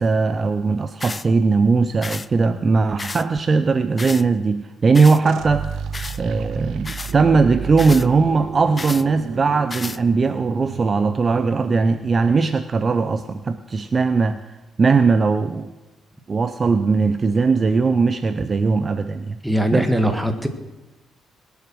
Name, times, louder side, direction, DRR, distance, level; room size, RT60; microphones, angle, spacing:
voice 1, 0.0-5.7 6.2-14.4 14.8-15.7 16.3-19.4 19.7-19.9, right 4 dB, 35° right, 11 dB, 0.6 m, -19 dB
sound 1, 1.0-1.3 2.0-2.3 3.0-3.3 4.0-4.2 4.9-5.2 5.9-6.2 6.8-7.1 7.8-8.1 8.8-9.0 9.7-10.0, left 3 dB, 25° left, 0.3 m, -32 dB
sound 2, 5.2-11.9, right 7 dB, 75° right, 0.7 m, -33 dB
voice 2, 19.4-20.5, equal, 5° right, 7 dB, 1.7 m, -20 dB
21.0 x 7.2 x 6.2 m, 1.1 s
cardioid pair, 90°, 0 cm